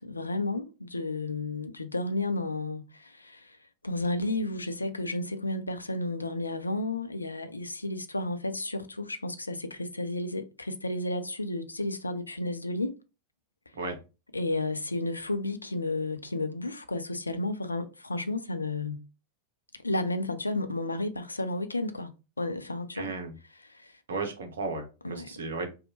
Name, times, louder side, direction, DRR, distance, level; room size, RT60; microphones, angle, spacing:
voice 1, 0.0-3.6 3.8-12.9 14.3-19.0 19.8-22.1 22.4-23.1 23.7-23.9 25.0-25.5, left 2 dB, 80° left, 0.3 m, -32 dB
voice 2, 22.9-23.3 24.1-25.7, right 3 dB, 65° right, 0.6 m, -34 dB
2.7 x 2.0 x 2.8 m
figure-of-eight pair, 90°, 0 cm